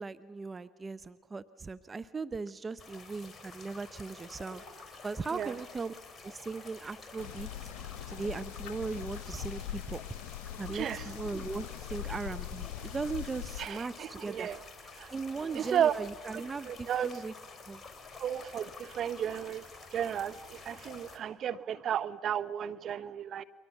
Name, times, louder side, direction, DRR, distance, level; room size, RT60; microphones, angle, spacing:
voice 1, 0.0-4.6 5.0-5.9 6.2-7.7 8.1-10.0 10.6-14.5 15.1-17.3 17.7-17.8, right 4 dB, 25° right, 13 dB, 0.7 m, -38 dB
sound 1, 2.8-21.2, left 4 dB, 25° left, 3.9 m, -50 dB
sound 2, 7.2-13.7, left 12 dB, 75° left, 0.9 m, -42 dB
voice 2, 10.7-11.1 13.6-14.6 15.0-15.1 15.5-15.9 16.3-17.1 18.2-23.4, right 9 dB, 50° right, 12 dB, 1.0 m, -34 dB
29.5 x 23.0 x 7.2 m, 1.4 s
hypercardioid pair, 70°, 0 cm